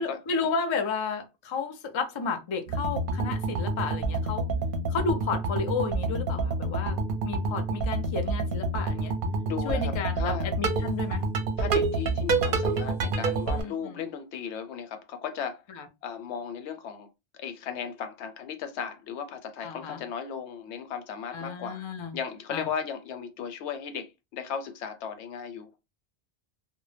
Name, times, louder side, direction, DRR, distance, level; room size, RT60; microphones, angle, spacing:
voice 1, 0.0-4.5 4.9-7.0 7.2-9.1 9.6-11.2 13.6-14.1 15.7-15.9 19.6-20.0 21.3-22.2 22.5-22.7, left 5 dB, 50° left, 0.3 m, -32 dB
sound 1, 2.7-13.6, right 3 dB, 60° right, 0.7 m, -28 dB
voice 2, 9.5-10.5 11.6-15.6 16.0-17.1 17.4-21.8 22.1-25.7, left 7 dB, 85° left, 0.9 m, -36 dB
2.1 x 2.0 x 3.1 m
omnidirectional pair, 1.1 m